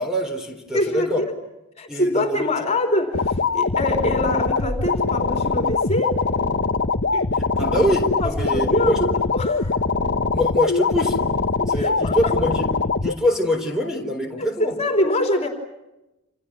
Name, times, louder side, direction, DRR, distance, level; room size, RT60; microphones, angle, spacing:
voice 1, 0.0-1.2 1.9-2.5 7.4-9.0 10.1-11.2 11.7-12.7 13.0-14.7, equal, ahead, 3 dB, 3.8 m, -24 dB
voice 2, 0.7-1.3 1.8-6.2 7.1-7.3 7.6-7.8 8.2-9.7 11.6-12.3 14.4-14.5 14.8-15.5, left 1 dB, 30° left, 4 dB, 3.4 m, -24 dB
sound 1, 3.1-13.1, left 4 dB, 50° left, 1.1 m, -22 dB
29.0 x 28.5 x 6.2 m, 0.95 s
head